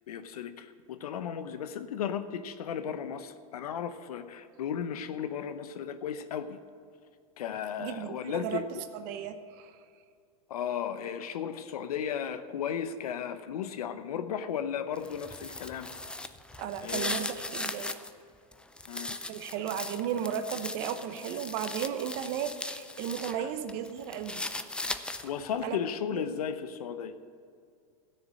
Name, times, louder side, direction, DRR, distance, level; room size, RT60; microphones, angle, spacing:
voice 1, 0.1-6.6 7.4-8.9 10.5-15.9 16.8-17.2 18.9-19.2 23.4-23.5 25.2-27.1, left 8 dB, 85° left, 10 dB, 0.8 m, -35 dB
voice 2, 7.8-8.6 8.9-9.8 16.6-18.0 19.3-24.4 24.8-25.1 25.6-25.8 26.1-26.4, right 9 dB, 55° right, 9 dB, 0.9 m, -35 dB
sound 1, 14.9-18.1 18.5-23.4 23.7-25.5, left 2 dB, 5° left, 0.5 m, -38 dB
13.0 x 6.8 x 8.4 m, 2.3 s
hypercardioid pair, 120°, 19 cm